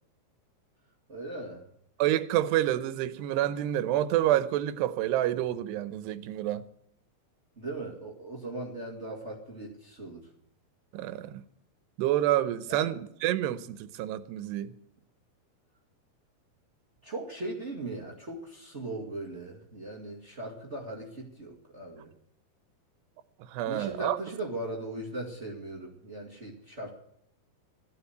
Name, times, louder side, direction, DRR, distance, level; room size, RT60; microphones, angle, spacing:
voice 1, 1.1-1.6 7.6-10.3 12.7-12.9 17.0-22.1 23.6-26.9, right 2 dB, 30° right, 1.3 m, -39 dB
voice 2, 2.0-6.6 10.9-11.4 12.0-14.7 23.5-24.2, right 13 dB, 90° right, 2.9 m, -28 dB
14.5 x 10.0 x 7.9 m
omnidirectional pair, 4.7 m